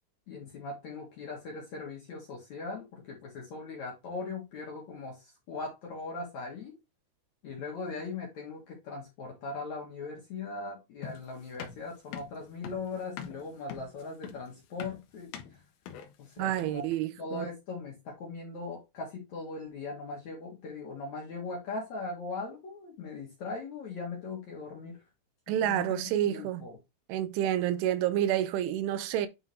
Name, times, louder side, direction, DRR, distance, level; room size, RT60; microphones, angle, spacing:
voice 1, 0.3-6.8 7.4-15.6 16.2-16.9 17.2-25.0 25.5-26.8, left 3 dB, 55° left, 2.1 m, -40 dB
sound 1, 11.0-16.9, left 8 dB, 75° left, 2.4 m, -44 dB
voice 2, 16.4-17.5 25.5-26.7 27.1-29.3, right 11 dB, 85° right, 3.2 m, -29 dB
9.7 x 3.7 x 3.1 m
omnidirectional pair, 5.4 m